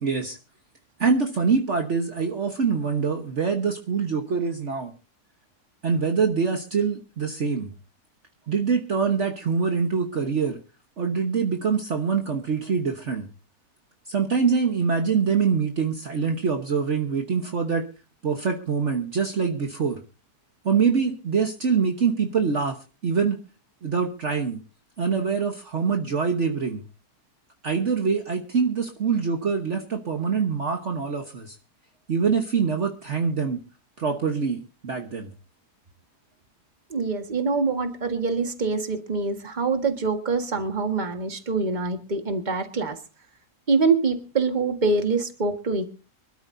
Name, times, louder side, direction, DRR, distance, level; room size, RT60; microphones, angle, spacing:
voice 1, 0.0-0.4 1.0-4.9 5.8-7.7 8.5-10.6 11.0-13.3 14.1-17.9 18.2-20.0 20.6-23.4 23.8-24.6 25.0-26.8 27.6-31.6 32.1-33.6 34.0-35.3, right 5 dB, 50° right, 4 dB, 1.5 m, -24 dB
voice 2, 36.9-43.0 43.7-45.9, right 4 dB, 30° right, 6 dB, 1.7 m, -25 dB
25.0 x 13.0 x 2.7 m, 0.34 s
omnidirectional pair, 1.6 m